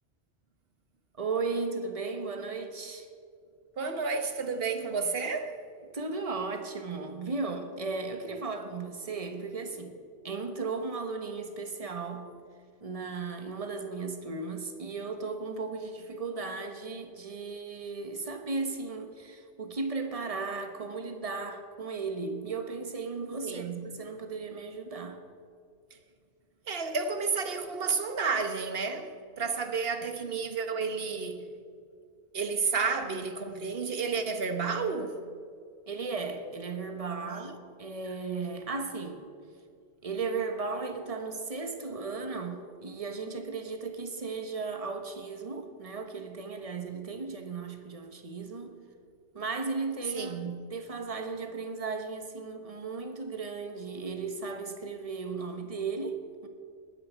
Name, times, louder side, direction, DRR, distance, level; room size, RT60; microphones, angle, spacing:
voice 1, 1.2-3.1 5.9-12.3 12.8-25.3 35.9-39.2 40.0-48.8 49.3-56.5, right 4 dB, 35° right, 1.2 m, -36 dB
voice 2, 3.8-5.5 23.4-23.8 26.7-29.1 29.4-31.5 32.3-35.1 37.2-37.4 50.1-50.6, right 5 dB, 65° right, 1.3 m, -31 dB
20.0 x 10.5 x 4.6 m
omnidirectional pair, 1.1 m